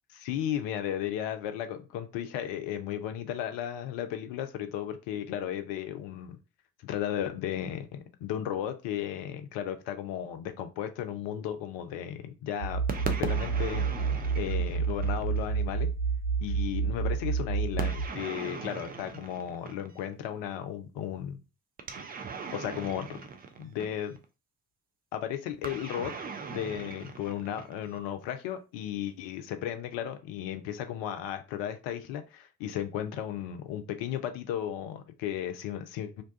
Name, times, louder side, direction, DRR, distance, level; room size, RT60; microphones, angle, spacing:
voice 1, 0.1-6.4 6.8-13.8 14.3-15.9 16.4-21.4 22.5-23.2 23.6-24.2 25.1-26.1 26.5-36.2, left 10 dB, 65° left, 0.6 m, -35 dB
sound 1, 12.6-18.1, right 5 dB, 70° right, 0.5 m, -29 dB
sound 2, 12.9-15.5 17.8-20.1 21.8-24.2 25.6-28.1, right 5 dB, 20° right, 0.4 m, -39 dB
2.6 x 2.2 x 2.5 m
hypercardioid pair, 45°, 49 cm